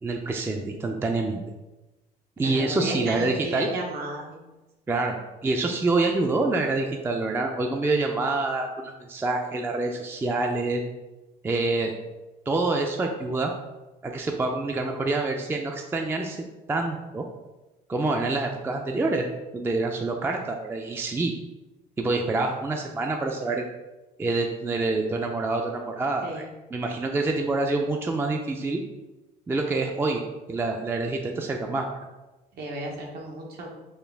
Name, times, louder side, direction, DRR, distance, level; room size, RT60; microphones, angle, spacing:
voice 1, 0.0-1.4 2.4-3.7 4.9-5.2 5.4-10.8 11.4-11.9 12.5-13.5 14.0-16.4 16.7-17.2 17.9-19.3 19.5-21.3 22.0-23.6 24.2-26.5 26.7-28.8 29.5-30.2 30.5-31.9, right 3 dB, 15° right, 2 dB, 0.3 m, -26 dB
voice 2, 2.4-4.4 26.2-26.4 32.6-33.7, right 1 dB, 70° right, -1 dB, 0.9 m, -33 dB
4.3 x 2.3 x 3.3 m, 1.1 s
cardioid pair, 110°, 17 cm